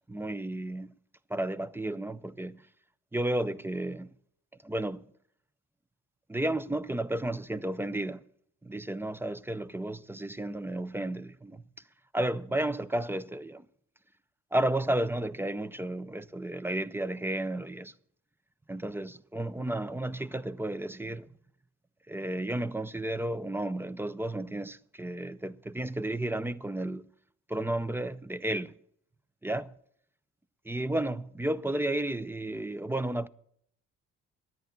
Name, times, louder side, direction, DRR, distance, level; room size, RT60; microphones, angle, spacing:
voice 1, 0.1-1.0 1.3-2.7 3.1-4.1 4.6-5.1 6.3-8.2 8.6-11.7 12.1-13.7 14.5-17.9 18.7-21.3 22.1-27.0 27.5-28.8 29.4-29.7 30.7-33.3, right 1 dB, 10° right, 0.4 m, -32 dB
10.5 x 9.3 x 6.7 m
cardioid pair, 90°, 30 cm